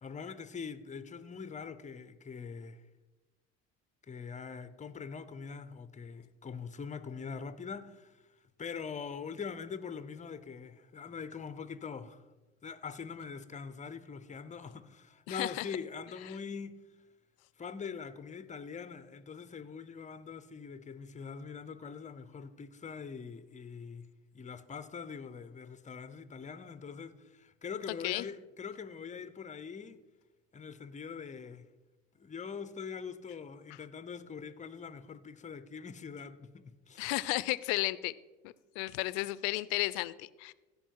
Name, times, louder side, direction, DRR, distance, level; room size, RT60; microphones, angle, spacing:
voice 1, 0.0-2.8 4.1-12.2 12.6-16.8 17.6-24.1 24.3-30.0 30.5-31.7 32.1-37.1, left 6 dB, 25° left, 0.7 m, -43 dB
voice 2, 15.3-15.7 28.0-28.2 37.0-38.1 38.4-40.5, left 20 dB, 80° left, 0.5 m, -33 dB
16.0 x 5.3 x 4.6 m
supercardioid pair, 85°, 31 cm